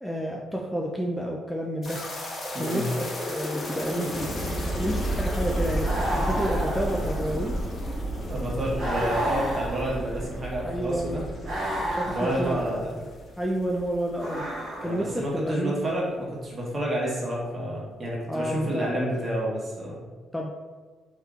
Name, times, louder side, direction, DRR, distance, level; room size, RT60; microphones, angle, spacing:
voice 1, 0.0-2.0 2.6-2.9 3.3-4.3 4.8-5.9 6.1-7.6 10.6-11.2 11.8-13.1 13.4-14.4 14.8-15.9 18.3-18.9 20.3-20.5, equal, 5° left, -1 dB, 0.3 m, -30 dB
sound 1, 1.8-14.2 14.4-14.5 15.1-15.2, equal, 50° left, 0.9 m, -32 dB
sound 2, 5.8-7.6 8.8-10.3 11.4-12.8 14.1-15.2, right 1 dB, 70° right, 1.2 m, -31 dB
voice 2, 8.3-11.2 12.0-12.9 14.8-20.0, right 1 dB, 35° right, -4 dB, 1.1 m, -29 dB
3.5 x 2.8 x 2.4 m, 1.4 s
cardioid pair, 90°, 0 cm